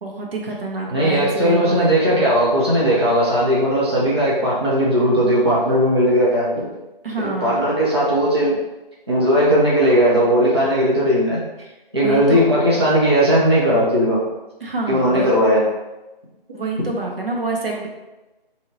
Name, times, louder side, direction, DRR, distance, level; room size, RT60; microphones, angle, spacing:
voice 1, 0.0-2.0 7.0-7.6 11.6-11.7 11.9-12.4 14.6-15.3 16.5-17.9, right 3 dB, 75° right, -1 dB, 1.1 m, -27 dB
voice 2, 0.9-6.7 7.2-8.5 9.1-11.4 11.9-14.2 14.9-15.6, equal, 30° right, -7 dB, 0.6 m, -17 dB
3.9 x 2.7 x 3.1 m, 1.1 s
figure-of-eight pair, 170°, 29 cm